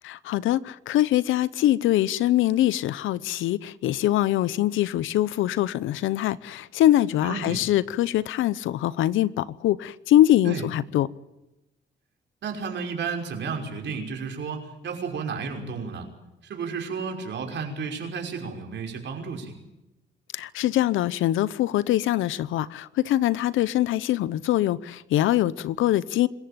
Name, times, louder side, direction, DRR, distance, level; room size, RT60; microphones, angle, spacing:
voice 1, 0.0-11.1 20.3-26.3, left 13 dB, 85° left, 0.9 m, -23 dB
voice 2, 7.2-7.6 10.4-10.6 12.4-16.1 16.5-19.5, right 5 dB, 65° right, 5.7 m, -32 dB
26.0 x 15.5 x 8.9 m
cardioid pair, 90°, 20 cm